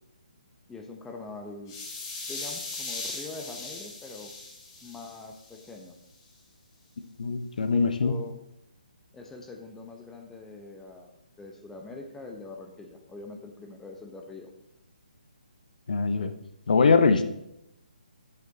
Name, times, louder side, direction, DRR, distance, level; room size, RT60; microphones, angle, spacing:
voice 1, 0.7-1.7 2.3-4.3 4.8-6.0 7.6-8.4 9.1-11.1 11.4-14.5, left 3 dB, 10° left, 2 dB, 0.8 m, -43 dB
sound 1, 1.7-5.7, left 3 dB, 30° left, 2.1 m, -39 dB
voice 2, 7.2-8.1 15.9-16.3 16.7-17.2, left 4 dB, 65° left, 9 dB, 0.8 m, -22 dB
7.8 x 6.5 x 4.0 m, 0.83 s
figure-of-eight pair, 140°, 5 cm